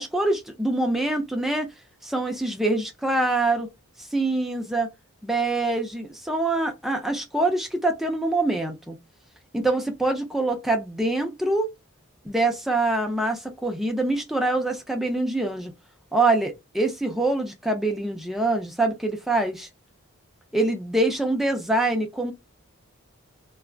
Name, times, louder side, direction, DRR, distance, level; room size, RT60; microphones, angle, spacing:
voice 1, 0.0-1.7 2.0-3.7 4.0-4.9 5.2-9.0 9.5-11.7 12.2-15.7 16.1-19.7 20.5-22.3, right 2 dB, ahead, 0.5 m, -25 dB
2.4 x 2.0 x 3.3 m
head